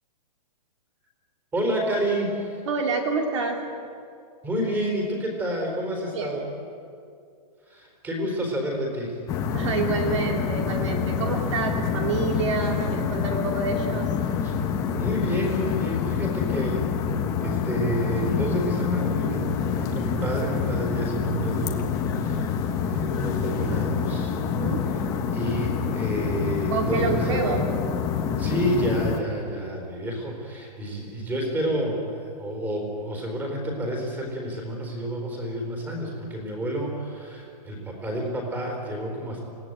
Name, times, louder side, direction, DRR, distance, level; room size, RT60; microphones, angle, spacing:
voice 1, 1.5-2.6 4.4-6.4 7.7-9.2 14.4-14.5 14.9-16.9 17.4-22.5 22.8-24.4 24.9-25.0 25.3-27.6 28.3-39.4, equal, 10° right, 1 dB, 4.0 m, -29 dB
voice 2, 2.7-3.7 6.1-6.5 9.5-14.1 24.4-24.9 26.7-27.8, right 4 dB, 45° right, 2 dB, 2.5 m, -28 dB
sound 1, 9.3-29.2, left 6 dB, 15° left, 1.4 m, -27 dB
29.5 x 17.5 x 9.0 m, 2.4 s
hypercardioid pair, 175°, 21 cm